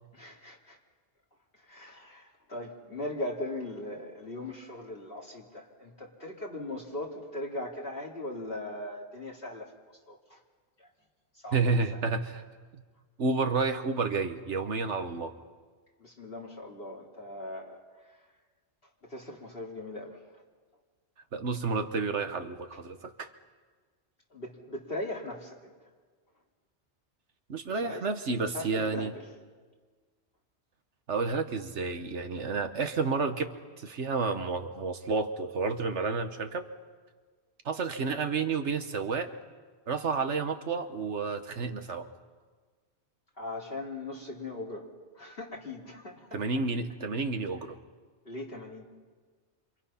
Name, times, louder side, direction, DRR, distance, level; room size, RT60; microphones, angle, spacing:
voice 1, 0.1-0.8 1.5-9.7 10.1-10.4 10.8-10.9 11.3-12.0 16.0-18.3 19.0-20.2 24.3-25.7 27.7-28.1 28.4-29.2 43.4-44.9 45.1-46.4 48.2-48.9, left 1 dB, 55° left, -3 dB, 3.2 m, -39 dB
voice 2, 11.5-12.4 12.7-12.8 13.2-15.4 21.3-23.3 27.5-29.1 31.1-36.7 37.7-39.3 39.9-42.1 46.3-47.8, right 4 dB, 80° right, 7 dB, 1.6 m, -30 dB
28.0 x 27.0 x 5.7 m, 1.5 s
omnidirectional pair, 1.2 m